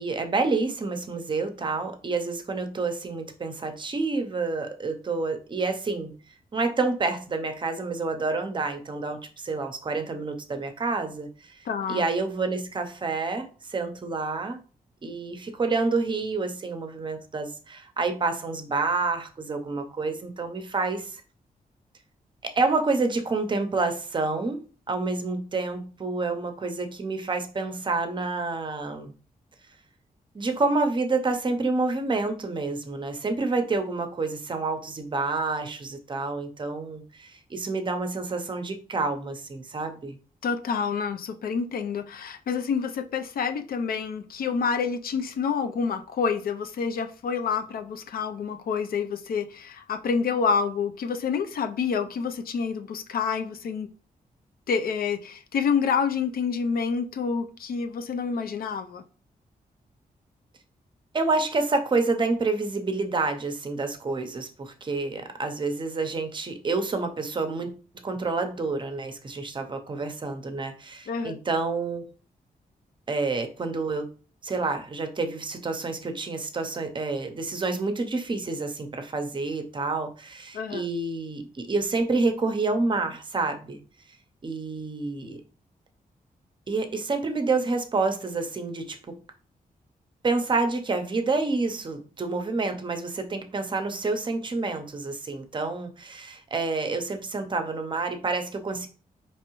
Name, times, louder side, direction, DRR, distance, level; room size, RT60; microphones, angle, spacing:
voice 1, 0.0-6.1 6.5-11.6 11.9-14.6 15.0-21.2 22.4-29.1 30.3-40.2 61.1-67.7 68.0-72.0 73.1-74.1 74.4-83.8 84.4-85.4 86.7-89.2 90.2-98.9, right 3 dB, 30° right, 0.6 m, -28 dB
voice 2, 11.7-12.0 40.4-53.9 54.7-59.0 71.1-71.3 80.5-80.8, left 6 dB, 75° left, 0.4 m, -28 dB
4.5 x 3.0 x 3.0 m
wide cardioid pair, 135°, 15 cm